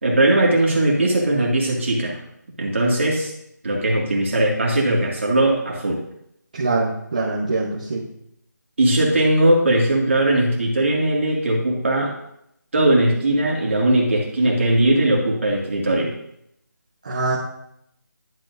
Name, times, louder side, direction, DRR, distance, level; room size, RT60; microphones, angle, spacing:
voice 1, 0.0-2.2 2.6-3.3 3.6-6.0 8.8-12.1 12.7-16.1, right 1 dB, 40° right, -2 dB, 2.1 m, -19 dB
voice 2, 6.5-8.0 17.0-17.4, right 3 dB, 25° right, -7 dB, 0.9 m, -23 dB
11.5 x 7.2 x 2.6 m, 0.77 s
figure-of-eight pair, 175°, 10 cm